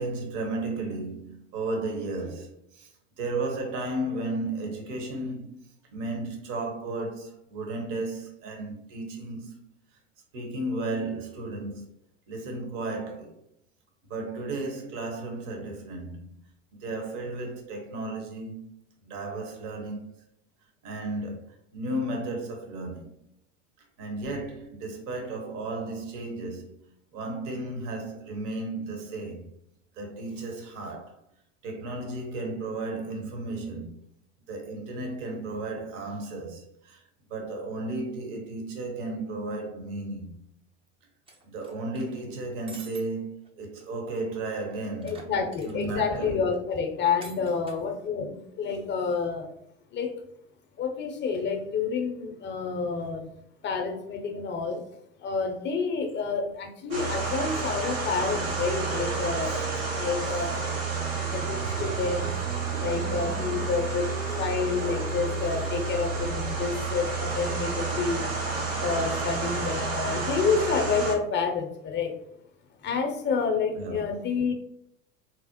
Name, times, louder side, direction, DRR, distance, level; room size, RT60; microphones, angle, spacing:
voice 1, 0.0-2.9 3.2-5.6 5.9-9.6 10.3-11.8 12.3-13.4 14.1-16.3 16.8-18.7 19.0-20.1 20.8-21.5 21.7-23.2 24.0-29.4 30.0-31.2 31.6-34.0 34.5-37.0 37.3-40.3 41.5-45.2 45.6-46.4 59.5-59.6 73.8-74.0, right 2 dB, 50° right, 1.0 m, -34 dB
sound 1, 41.3-42.2 42.7-43.0 43.4-43.5 43.8-43.9 45.0-46.0 47.2-47.8, right 3 dB, 15° right, 0.5 m, -47 dB
voice 2, 45.0-49.5 49.9-50.2 50.8-54.8 55.2-59.6 59.9-62.3 62.8-68.3 68.8-72.1 72.8-74.5, left 5 dB, 30° left, 0.6 m, -29 dB
sound 2, 56.9-71.1, right 4 dB, 85° right, 1.1 m, -30 dB
sound 3, 58.9-68.2, right 6 dB, 70° right, 0.5 m, -42 dB
4.1 x 2.0 x 2.8 m
hypercardioid pair, 85°, 39 cm